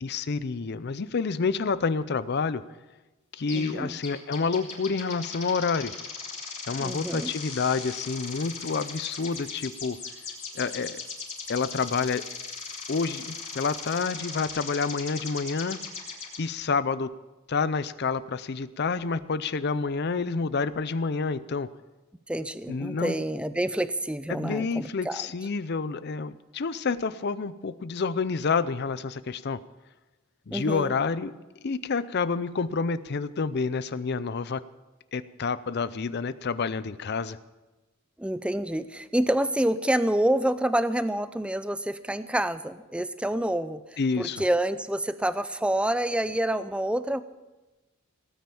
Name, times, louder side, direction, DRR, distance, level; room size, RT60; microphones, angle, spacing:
voice 1, 0.0-2.6 3.3-5.9 6.7-10.0 10.5-11.0 11.5-12.2 12.9-15.8 16.4-17.1 17.5-21.7 22.7-23.1 24.3-29.6 30.5-34.6 35.1-37.4 44.0-44.4, left 4 dB, 50° left, 15 dB, 0.5 m, -28 dB
sound 1, 3.5-3.7 4.0-16.4, left 5 dB, 35° left, 3.2 m, -38 dB
voice 2, 3.5-4.0 6.8-7.3 22.3-25.3 30.5-30.9 38.2-47.2, right 1 dB, 5° right, 13 dB, 0.5 m, -27 dB
18.0 x 9.5 x 7.0 m, 1.1 s
head